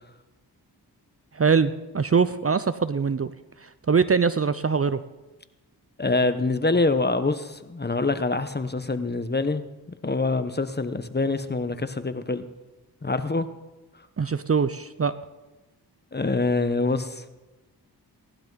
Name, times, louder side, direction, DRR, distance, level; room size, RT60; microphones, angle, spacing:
voice 1, 1.3-3.3 3.6-5.0 14.2-15.1, right 5 dB, 35° right, 0.7 m, -23 dB
voice 2, 6.0-9.7 10.0-12.4 13.0-13.5 16.1-17.3, left 3 dB, 25° left, 1.1 m, -25 dB
18.5 x 11.5 x 4.0 m
cardioid pair, 50°, 41 cm